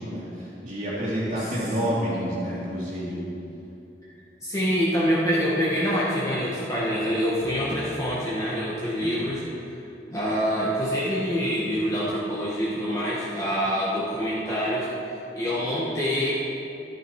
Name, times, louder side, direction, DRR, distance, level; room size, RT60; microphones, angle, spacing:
voice 1, 0.0-3.2 7.4-7.9 9.0-9.2, equal, 40° right, -11 dB, 2.4 m, -29 dB
voice 2, 4.4-9.4 10.1-14.9 15.4-16.3, equal, 20° left, -8 dB, 1.6 m, -25 dB
13.0 x 11.0 x 4.8 m, 2.8 s
head